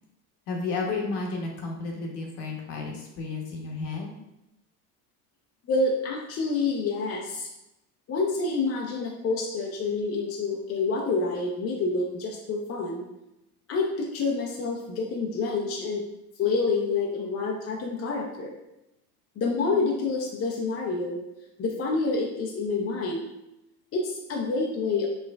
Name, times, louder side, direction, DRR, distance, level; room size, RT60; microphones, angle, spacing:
voice 1, 0.5-4.1, left 3 dB, 55° left, -1 dB, 1.0 m, -32 dB
voice 2, 5.7-7.5 8.1-13.0 13.7-16.0 16.4-18.5 19.4-21.2 21.6-23.2 23.9-25.1, left 3 dB, 30° left, -1 dB, 0.5 m, -28 dB
4.4 x 2.3 x 2.3 m, 0.89 s
hypercardioid pair, 80°, 46 cm